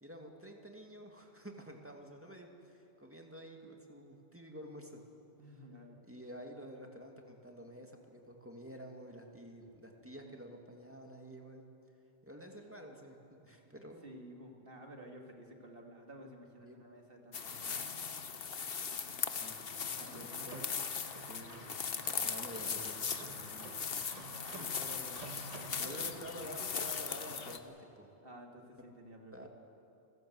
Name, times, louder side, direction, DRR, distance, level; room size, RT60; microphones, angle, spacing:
voice 1, 0.0-5.0 6.0-11.7 12.2-14.0 16.6-16.9 19.4-19.6 19.9-20.6 21.3-21.7 22.2-23.7 24.5-24.7 25.8-28.1 29.3-29.5, equal, 10° right, 2 dB, 2.3 m, -50 dB
voice 2, 5.4-6.0 14.0-17.9 20.0-20.5 24.3-26.7 28.2-29.5, equal, 60° right, 2 dB, 2.5 m, -53 dB
sound 1, 17.3-27.6, left 6 dB, 65° left, 1.3 m, -39 dB
sound 2, 19.9-26.5, right 3 dB, 35° right, 1.5 m, -53 dB
28.0 x 16.0 x 7.9 m, 2.7 s
omnidirectional pair, 1.1 m